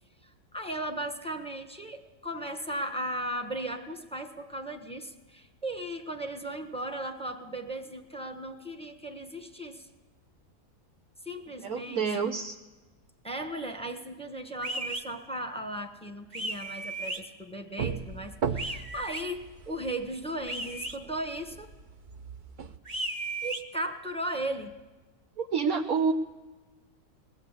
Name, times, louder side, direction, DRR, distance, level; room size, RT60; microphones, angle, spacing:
voice 1, 0.2-9.9 11.2-12.2 13.2-21.7 23.4-24.7, right 1 dB, 5° left, 6 dB, 1.1 m, -36 dB
voice 2, 11.6-12.5 25.4-26.1, right 5 dB, 65° right, 3 dB, 1.3 m, -28 dB
sound 1, 14.6-15.0 16.3-17.2 18.5-19.2 20.5-21.0 22.8-23.6, right 2 dB, 30° right, 1.4 m, -35 dB
sound 2, 17.8-22.8, right 6 dB, 45° right, 0.6 m, -37 dB
21.0 x 15.5 x 8.2 m, 1.2 s
omnidirectional pair, 1.7 m